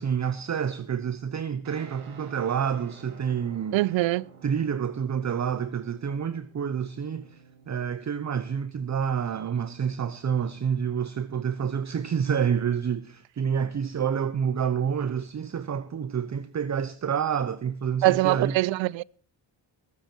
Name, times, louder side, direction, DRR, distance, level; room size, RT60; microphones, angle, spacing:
voice 1, 0.0-3.8 4.4-7.4 7.7-18.6, right 7 dB, 35° right, 0.9 m, -28 dB
Guitar, 1.6-10.6, right 6 dB, 85° right, 3.1 m, -53 dB
voice 2, 3.7-4.2 18.0-19.0, right 18 dB, 70° right, 0.6 m, -23 dB
20.5 x 9.2 x 4.5 m
supercardioid pair, 70°, 48 cm